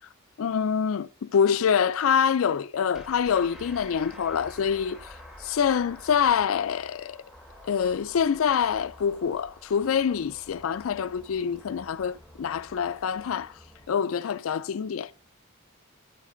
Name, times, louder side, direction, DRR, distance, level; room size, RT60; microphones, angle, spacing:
voice 1, 0.4-7.2 7.6-13.6 13.9-15.1, left 7 dB, 85° left, 0.4 m, -26 dB
sound 1, 2.9-13.9, left 1 dB, ahead, 1.0 m, -49 dB
12.0 x 7.3 x 3.8 m
head